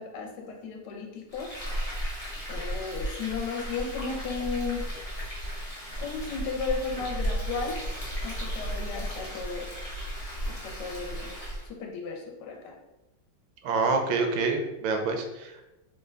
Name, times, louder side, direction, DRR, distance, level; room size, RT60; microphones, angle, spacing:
voice 1, 0.0-1.5 2.5-5.1 5.6-7.9 8.2-9.7 10.5-12.8, left 5 dB, 75° left, 1 dB, 1.2 m, -35 dB
Frying (food), 1.3-11.7, equal, 45° left, 0.4 m, -34 dB
voice 2, 13.6-15.7, right 4 dB, 90° right, 4 dB, 1.3 m, -27 dB
3.7 x 2.1 x 3.3 m, 1.0 s
omnidirectional pair, 2.0 m